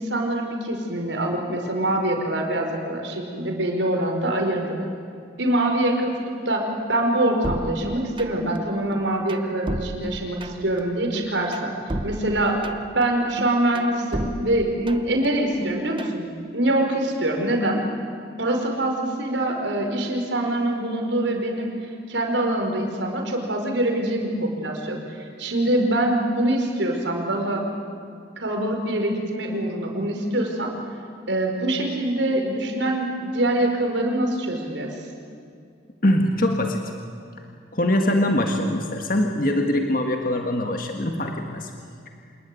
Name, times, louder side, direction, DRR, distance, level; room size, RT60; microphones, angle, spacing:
voice 1, 0.0-4.7 5.4-12.6 12.9-16.3 16.5-17.8 18.4-21.7 22.1-27.6 28.4-30.7 31.3-35.0, right 1 dB, 80° right, 2 dB, 4.8 m, -24 dB
sound 1, 7.4-8.6 8.9-10.8 11.1-13.0 13.4-15.3 15.6-16.2, right 1 dB, 25° right, 1.0 m, -33 dB
voice 2, 36.0-36.8 37.7-41.7, left 1 dB, 50° left, 3 dB, 1.8 m, -23 dB
26.5 x 21.0 x 9.8 m, 2.3 s
head